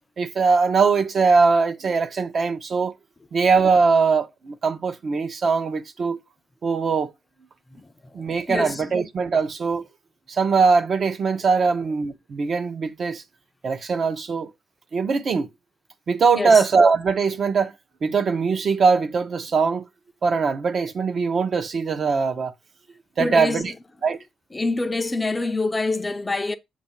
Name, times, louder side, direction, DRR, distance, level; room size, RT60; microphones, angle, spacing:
voice 1, 0.2-2.9 3.3-6.2 6.6-7.1 8.1-9.9 10.3-13.2 13.6-14.5 14.9-15.5 16.1-17.7 18.0-19.9 20.2-22.5 23.2-23.7 24.0-24.2, right 5 dB, 45° right, 0.7 m, -21 dB
voice 2, 8.2-8.9 16.3-16.6 23.2-23.7 24.5-26.6, left 2 dB, 15° left, 0.4 m, -26 dB
7.1 x 2.6 x 5.6 m
cardioid pair, 140°, 0 cm